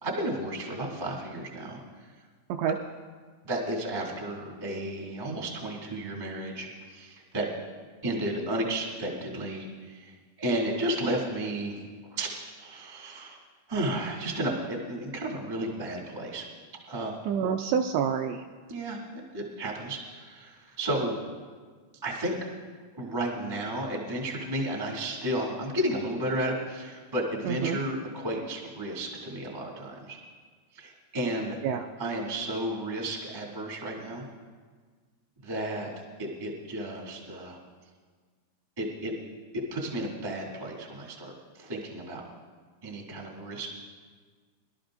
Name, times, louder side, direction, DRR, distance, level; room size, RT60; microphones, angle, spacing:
voice 1, 0.0-1.8 3.4-7.5 8.0-11.8 12.1-13.4 13.7-16.4 16.9-17.1 18.7-19.0 19.3-21.2 22.0-22.4 23.0-30.2 30.7-31.6 31.9-34.2 35.4-35.9 36.2-37.6 38.8-39.1 39.7-42.2 42.8-43.7, right 1 dB, 25° right, -2 dB, 0.5 m, -33 dB
voice 2, 17.3-18.4 27.5-27.8 31.6-31.8, right 7 dB, 85° right, 4 dB, 2.5 m, -27 dB
23.5 x 12.5 x 2.6 m, 1.5 s
omnidirectional pair, 5.4 m